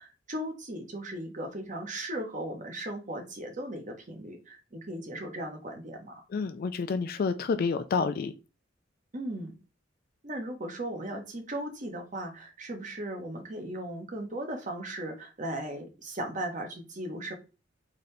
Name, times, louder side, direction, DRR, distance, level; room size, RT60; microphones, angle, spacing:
voice 1, 0.0-6.1 9.1-9.6 10.2-17.3, right 1 dB, 40° right, 1.0 m, -37 dB
voice 2, 6.3-8.3, left 5 dB, 50° left, 0.3 m, -29 dB
3.8 x 2.8 x 3.3 m
head